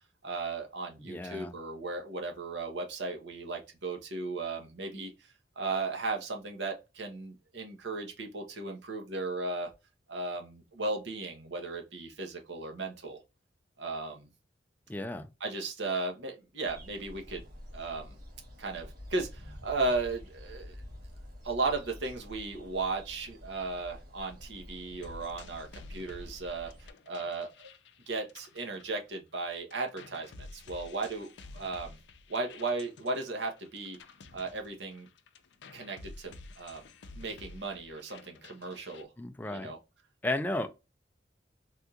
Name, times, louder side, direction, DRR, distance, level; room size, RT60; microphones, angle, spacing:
voice 1, 0.2-5.3 5.6-9.7 10.1-13.2 13.8-14.3 15.4-17.5 17.7-18.2 18.6-20.8 21.4-27.7 28.1-32.0 32.3-34.0 34.3-35.1 35.7-36.9 37.1-39.1 39.5-39.8, right 3 dB, 75° right, 0.9 m, -36 dB
voice 2, 1.1-1.5 14.9-15.3 39.2-39.7 40.2-40.7, left 2 dB, 10° left, 0.3 m, -33 dB
sound 1, 16.6-26.9, equal, 50° right, 1.9 m, -48 dB
sound 2, 25.0-29.4 29.7-39.0, left 3 dB, 75° left, 0.5 m, -51 dB
3.4 x 2.4 x 2.7 m
head